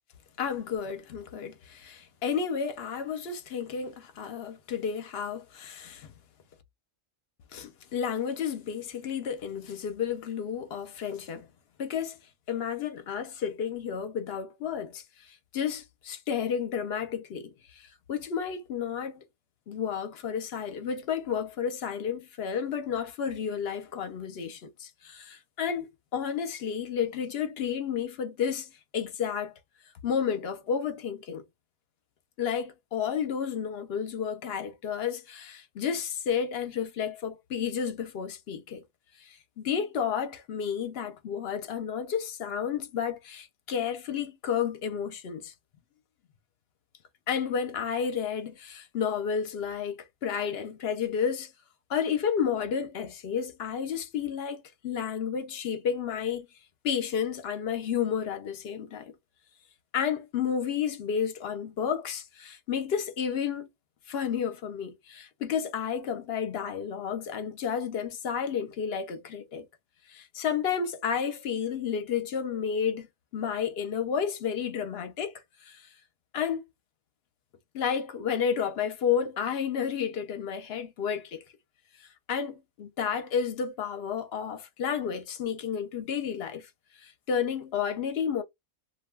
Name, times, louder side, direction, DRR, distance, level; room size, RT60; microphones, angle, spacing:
voice 1, 0.4-6.1 7.5-11.5 11.8-12.2 12.5-15.0 15.5-19.2 19.7-29.5 30.0-31.4 32.4-38.8 39.6-45.5 47.3-51.5 51.9-56.5 56.8-59.1 59.9-63.7 64.1-69.7 70.1-73.1 73.3-75.3 75.7-75.8 76.3-76.6 77.7-81.4 82.3-86.7 87.0-88.4, left 7 dB, 65° left, 0.8 m, -31 dB
2.4 x 2.2 x 3.2 m
omnidirectional pair, 1.2 m